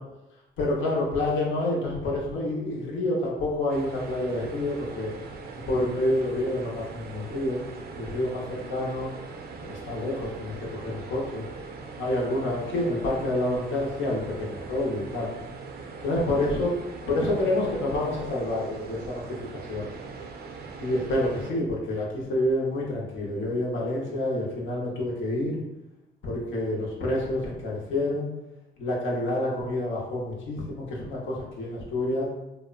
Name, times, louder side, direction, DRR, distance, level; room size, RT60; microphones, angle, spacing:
voice 1, 0.6-5.1 5.7-7.6 8.0-9.1 9.6-11.4 12.0-15.3 16.0-16.8 17.1-19.4 19.7-19.9 20.8-25.5 26.2-28.3 28.8-32.3, left 1 dB, 75° left, -3 dB, 0.7 m, -28 dB
Starting up industrial boiler, 3.7-21.5, right 4 dB, 50° right, 0.4 m, -41 dB
2.7 x 2.1 x 2.4 m, 0.97 s
cardioid pair, 90°, 20 cm